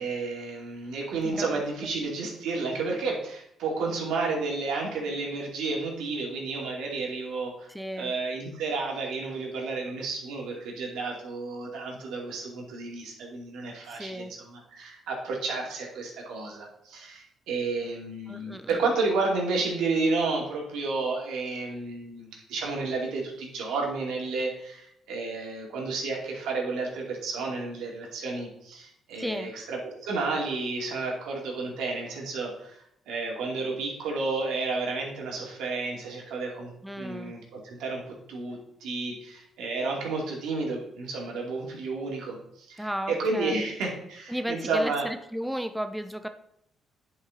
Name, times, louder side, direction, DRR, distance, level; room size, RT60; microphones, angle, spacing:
voice 1, 0.0-7.7 8.0-45.1, right 3 dB, 85° right, -1 dB, 2.5 m, -31 dB
voice 2, 7.7-8.1 13.9-14.3 18.3-18.8 29.2-29.5 36.8-37.4 42.8-43.7 44.3-46.3, equal, 5° right, 8 dB, 0.6 m, -34 dB
10.0 x 5.5 x 4.1 m, 0.74 s
cardioid pair, 90°, 0 cm